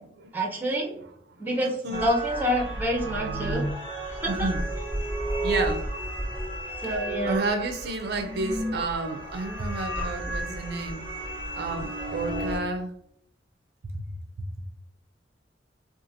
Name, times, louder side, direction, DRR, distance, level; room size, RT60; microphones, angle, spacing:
voice 1, 0.3-0.9 1.4-3.7 4.2-4.5 6.8-7.4, equal, 10° right, 0.5 m, -27 dB
voice 2, 1.6-2.1 4.3-4.7 5.4-5.8 7.3-11.0 11.6-12.9 13.9-14.1, right 2 dB, 60° right, 0.4 m, -30 dB
sound 1, 1.9-12.6, right 1 dB, 30° left, 0.8 m, -32 dB
2.7 x 2.3 x 2.6 m
head